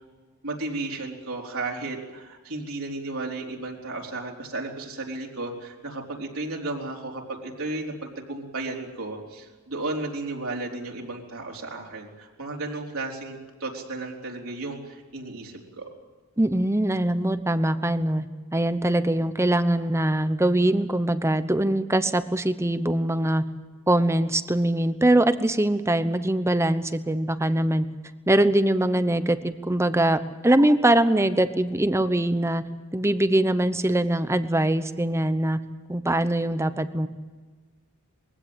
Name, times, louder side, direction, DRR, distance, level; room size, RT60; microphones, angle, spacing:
voice 1, 0.4-15.9, right 2 dB, 65° right, -1 dB, 4.2 m, -34 dB
voice 2, 16.4-18.3 18.5-23.4 23.9-27.9 28.3-32.6 32.9-35.6 35.9-37.1, right 1 dB, 10° right, 11 dB, 1.0 m, -22 dB
22.5 x 16.0 x 9.1 m, 1.4 s
head